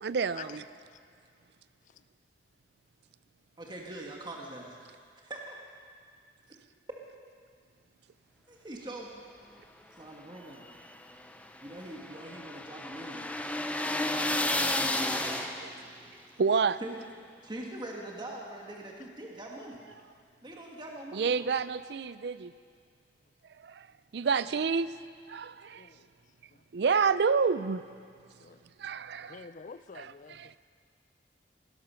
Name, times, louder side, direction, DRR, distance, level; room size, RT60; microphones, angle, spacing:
voice 1, 0.0-0.6 14.6-15.7 16.4-16.8 21.1-22.5 23.6-23.9 24.1-24.9 25.3-25.8 26.7-27.8 28.8-29.5 30.0-30.6, right 5 dB, 65° right, 0.4 m, -29 dB
voice 2, 3.6-5.0 5.2-5.6 8.5-9.1 10.0-10.7 11.6-13.5 16.8-17.0 17.4-19.8 20.4-21.5, right 1 dB, 25° right, 1.5 m, -43 dB
sound 1, 10.4-15.9, left 1 dB, 10° left, 0.7 m, -32 dB
voice 3, 29.3-30.6, left 6 dB, 45° left, 0.4 m, -47 dB
18.0 x 12.0 x 5.7 m
head